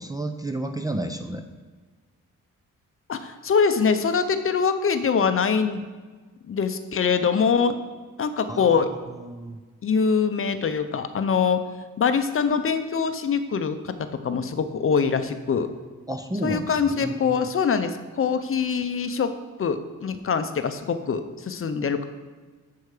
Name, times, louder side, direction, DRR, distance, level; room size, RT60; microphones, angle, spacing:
voice 1, 0.0-1.4 8.5-8.8 9.1-9.6 16.1-17.5, right 1 dB, 10° right, 4 dB, 0.4 m, -31 dB
voice 2, 3.1-5.8 6.5-7.8 8.2-8.9 9.8-11.6 12.0-15.7 16.4-19.3 19.6-22.0, left 6 dB, 45° left, 9 dB, 0.6 m, -23 dB
11.0 x 4.7 x 4.9 m, 1.4 s
wide cardioid pair, 125°, 32 cm